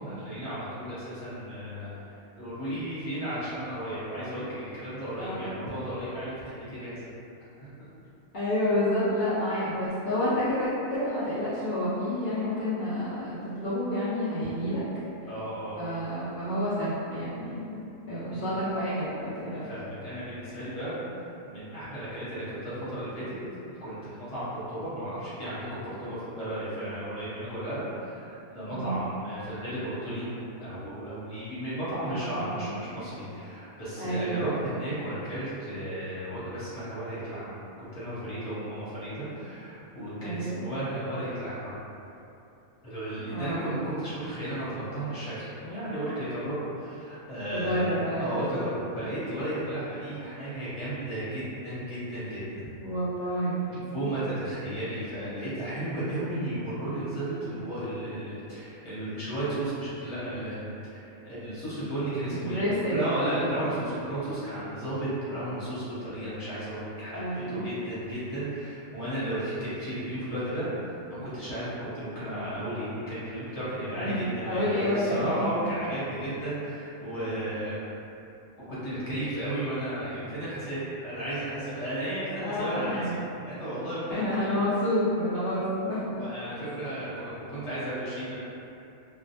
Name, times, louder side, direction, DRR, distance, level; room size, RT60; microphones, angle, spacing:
voice 1, 0.0-2.0 2.3-7.1 7.6-7.9 15.3-15.8 18.3-18.5 19.6-23.4 23.7-24.0 24.3-41.8 42.8-52.4 53.3-53.5 53.7-62.6 62.9-77.8 78.7-83.2 83.4-84.6 86.1-88.3, right 1 dB, 30° left, -12 dB, 0.8 m, -34 dB
voice 2, 5.2-5.6 8.3-14.8 15.8-19.7 28.7-29.0 32.1-32.7 34.0-34.6 40.2-40.7 43.3-43.7 47.5-48.4 52.8-53.7 62.3-63.3 67.1-67.7 73.9-75.5 82.4-83.1 84.1-86.1, equal, 65° left, -13 dB, 0.4 m, -29 dB
2.5 x 2.0 x 2.7 m, 2.8 s
omnidirectional pair, 1.5 m